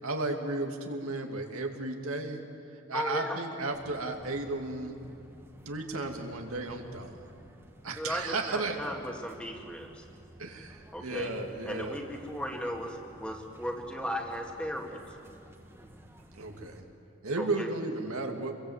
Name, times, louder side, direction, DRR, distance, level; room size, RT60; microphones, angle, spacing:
voice 1, 0.0-2.4 2.9-4.9 5.7-7.2 7.8-8.8 10.4-12.0 16.3-16.8 17.2-18.5, right 2 dB, 85° right, 3 dB, 2.5 m, -34 dB
voice 2, 2.9-3.4 7.9-10.0 10.9-11.3 11.6-15.0 17.4-17.7, equal, 5° left, 1 dB, 2.2 m, -36 dB
sound 1, 3.7-16.8, equal, 10° right, 1.6 m, -54 dB
28.0 x 22.5 x 8.1 m, 2.6 s
head